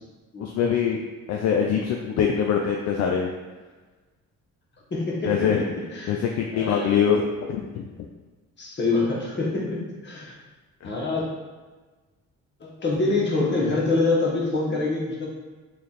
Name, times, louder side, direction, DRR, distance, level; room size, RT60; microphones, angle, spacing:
voice 1, 0.4-1.0 1.3-3.3 5.2-5.6 6.1-7.9 10.8-10.9, left 7 dB, 60° left, 1 dB, 0.4 m, -23 dB
voice 2, 4.9-6.2 6.5-7.0 8.6-10.3 10.8-11.2 12.6-15.3, left 3 dB, 35° left, -4 dB, 1.1 m, -25 dB
3.2 x 2.4 x 4.1 m, 1.3 s
cardioid pair, 90°, 30 cm